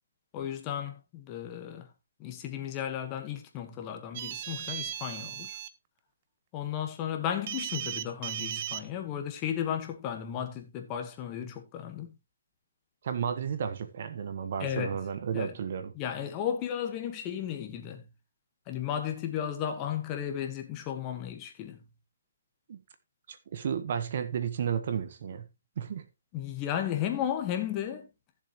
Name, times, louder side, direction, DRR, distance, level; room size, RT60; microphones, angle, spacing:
voice 1, 0.3-1.9 2.2-5.6 6.5-12.2 14.6-15.0 15.3-15.5 15.9-18.1 18.7-21.8 26.3-28.1, left 9 dB, 20° left, 1.4 m, -34 dB
sound 1, 4.1-5.7 7.5-8.8, right 11 dB, 35° right, 0.7 m, -36 dB
voice 2, 13.0-15.9 22.7-22.8 23.3-25.5 25.8-26.1, right 7 dB, 50° right, 1.2 m, -33 dB
15.0 x 7.2 x 3.0 m
hypercardioid pair, 165°, 0 cm